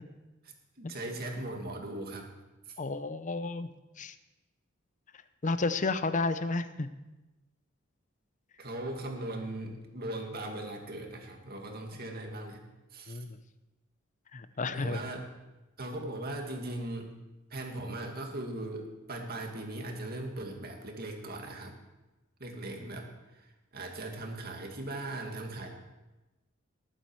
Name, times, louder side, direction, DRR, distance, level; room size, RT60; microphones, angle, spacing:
voice 1, 0.4-2.3 2.7-2.8 8.6-12.6 12.9-13.2 14.7-15.3 15.8-17.2 17.5-21.8 22.4-25.7, right 1 dB, 50° right, 2 dB, 2.1 m, -39 dB
voice 2, 2.8-3.7 4.0-4.1 5.4-6.9 13.1-13.4 14.3-15.0, left 3 dB, 40° left, 12 dB, 0.7 m, -31 dB
19.5 x 8.7 x 4.7 m, 1.1 s
head